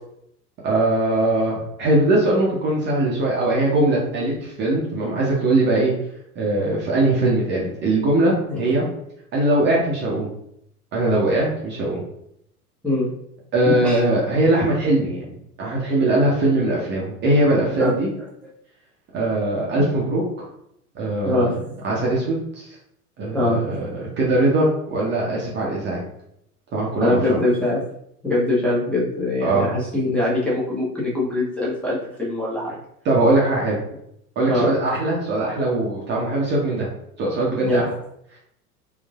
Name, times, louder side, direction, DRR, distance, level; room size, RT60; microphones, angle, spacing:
voice 1, 0.6-5.9 6.4-8.9 9.3-10.3 10.9-12.0 13.5-15.3 15.6-18.1 19.1-20.5 20.9-21.5 21.8-22.7 23.2-26.0 26.7-27.4 29.4-29.7 33.0-33.8 34.4-36.9 37.2-37.9, right 2 dB, 25° right, -4 dB, 0.8 m, -21 dB
voice 2, 13.7-14.0 17.8-17.9 21.2-21.6 23.3-23.6 27.0-27.8 28.2-32.7 34.4-34.7 37.6-37.9, left 2 dB, 5° left, -8 dB, 0.8 m, -22 dB
3.7 x 2.4 x 2.4 m, 0.74 s
figure-of-eight pair, 85°, 46 cm